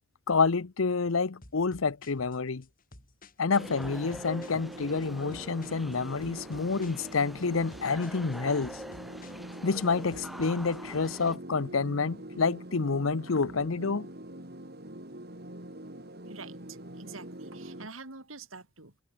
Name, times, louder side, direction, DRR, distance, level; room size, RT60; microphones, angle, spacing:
voice 1, 0.3-2.6 3.4-8.8 9.6-14.1, left 4 dB, 80° left, 0.8 m, -28 dB
sound 1, 1.4-10.9, left 2 dB, 45° left, 6.8 m, -55 dB
sound 2, 3.5-11.4, equal, ahead, 1.7 m, -46 dB
sound 3, 3.5-17.9, right 1 dB, 50° right, 4.1 m, -44 dB
voice 2, 16.3-19.0, right 4 dB, 80° right, 3.7 m, -46 dB
head